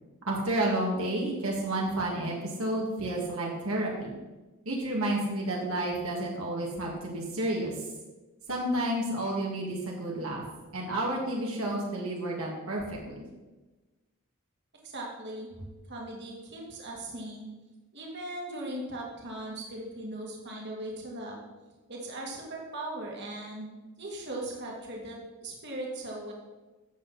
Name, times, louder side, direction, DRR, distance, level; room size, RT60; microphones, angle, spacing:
voice 1, 0.3-4.1 4.7-7.9 8.5-10.4 10.7-13.2, right 1 dB, 70° right, -2 dB, 2.3 m, -31 dB
voice 2, 14.8-15.5 15.9-17.5 17.9-21.4 21.9-26.3, right 1 dB, 50° right, -2 dB, 2.4 m, -39 dB
13.5 x 8.1 x 4.2 m, 1.2 s
head